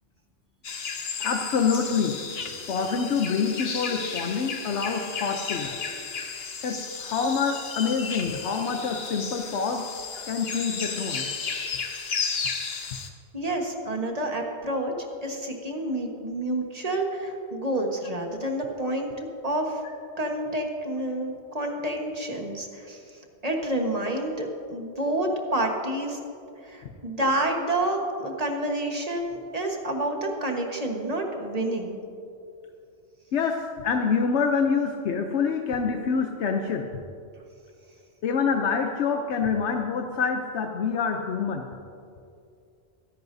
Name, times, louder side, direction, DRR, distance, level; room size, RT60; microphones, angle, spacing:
sound 1, 0.6-13.1, left 5 dB, 65° left, 1.2 m, -33 dB
voice 1, 1.2-2.2 2.7-5.8 6.6-9.8 10.2-11.3 33.3-36.9 38.2-41.7, left 5 dB, 90° left, 4 dB, 1.0 m, -26 dB
voice 2, 13.3-19.8 20.2-23.0 23.4-26.2 26.6-32.0, right 1 dB, 35° right, 2 dB, 1.4 m, -29 dB
22.0 x 10.5 x 2.7 m, 2.5 s
omnidirectional pair, 1.1 m